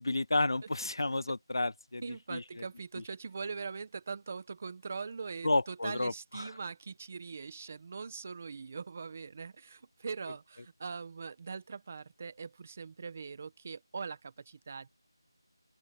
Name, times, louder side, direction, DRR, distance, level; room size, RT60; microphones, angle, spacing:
voice 1, 0.0-2.0 2.3-2.4 5.4-6.5, left 2 dB, 65° left, 0.7 m, -31 dB
voice 2, 2.0-14.9, right 5 dB, 20° right, 1.5 m, -42 dB
open air
figure-of-eight pair, 175°, 2 cm